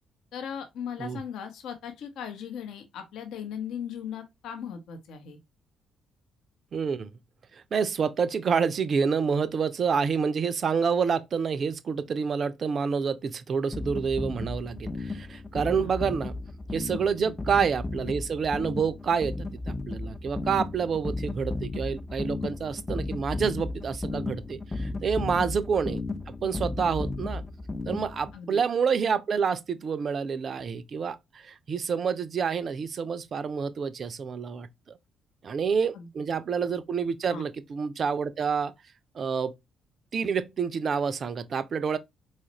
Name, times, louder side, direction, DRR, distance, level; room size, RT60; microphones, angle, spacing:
voice 1, 0.3-5.4 15.6-15.9 17.2-17.3 25.3-25.5 26.8-27.0 28.3-28.6 35.9-36.1 37.3-37.5, left 7 dB, 60° left, 0.7 m, -38 dB
voice 2, 6.7-7.1 7.5-16.4 16.7-27.4 27.9-35.0 35.4-38.7 39.1-39.5 40.1-42.0, right 6 dB, 45° right, 0.4 m, -28 dB
sound 1, 13.7-28.4, left 2 dB, 15° left, 0.4 m, -34 dB
4.2 x 2.4 x 2.9 m
figure-of-eight pair, 45°, 0 cm